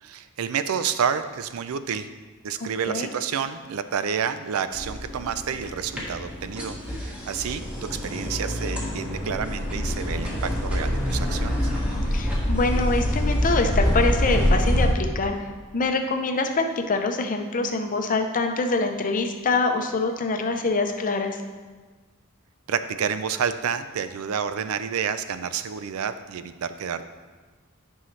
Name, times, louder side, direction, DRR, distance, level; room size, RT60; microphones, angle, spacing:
voice 1, 0.0-2.1 2.4-11.7 22.7-27.1, right 7 dB, 75° right, 12 dB, 0.4 m, -29 dB
sound 1, 4.7-14.9, equal, 5° right, 1.4 m, -26 dB
voice 2, 12.1-15.3 15.7-21.4, left 3 dB, 40° left, 5 dB, 0.6 m, -25 dB
10.0 x 5.5 x 3.2 m, 1.4 s
head